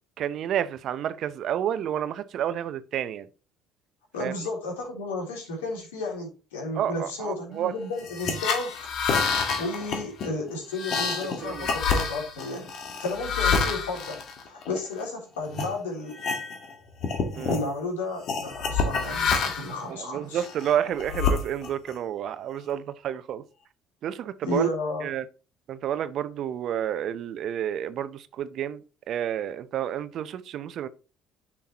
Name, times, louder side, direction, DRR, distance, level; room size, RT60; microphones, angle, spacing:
voice 1, 0.2-3.3 4.2-4.3 6.7-7.7 11.4-11.7 17.3-17.5 19.9-23.4 24.0-24.7 25.0-25.2 25.7-30.9, right 10 dB, 55° right, 0.7 m, -30 dB
voice 2, 4.1-8.7 9.6-16.2 17.3-20.4 24.4-25.1, left 2 dB, 80° left, 3.3 m, -33 dB
sound 1, 8.0-15.0 15.5-15.7 16.1-16.7 17.0-17.7 18.3-19.8 20.4-21.9, left 5 dB, 55° left, 1.7 m, -28 dB
10.5 x 6.0 x 3.0 m
hypercardioid pair, 60°, 0 cm